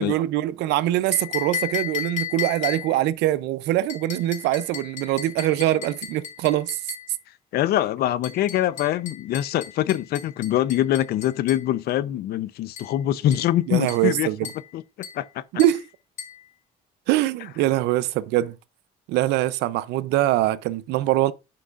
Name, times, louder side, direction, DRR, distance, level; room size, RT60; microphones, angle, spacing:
voice 1, 0.0-6.8 13.7-14.4 15.5-15.8 17.1-18.5 19.1-21.3, right 14 dB, 90° right, 0.6 m, -23 dB
sound 1, 1.1-3.1 3.9-7.1 8.2-11.7 12.8-13.0 13.3-13.6 13.9-14.2 14.4-14.7 15.0-15.3 15.6-15.8 16.2-16.4, left 9 dB, 50° left, 3.4 m, -35 dB
voice 2, 7.5-14.3 14.7-14.8 15.1-15.4, left 13 dB, 70° left, 0.6 m, -24 dB
11.5 x 5.4 x 2.5 m
cardioid pair, 110°, 17 cm